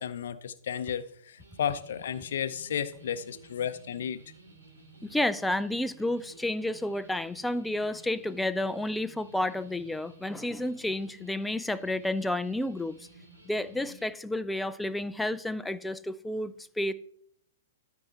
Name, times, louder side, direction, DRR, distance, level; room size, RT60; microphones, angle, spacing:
voice 1, 0.0-4.2, left 8 dB, 60° left, 0.5 m, -33 dB
sound 1, 1.4-14.1, right 2 dB, 80° right, 3.0 m, -54 dB
voice 2, 5.0-13.0 13.4-16.9, left 1 dB, 5° left, 0.4 m, -31 dB
13.0 x 4.6 x 4.2 m
figure-of-eight pair, 115°, 0 cm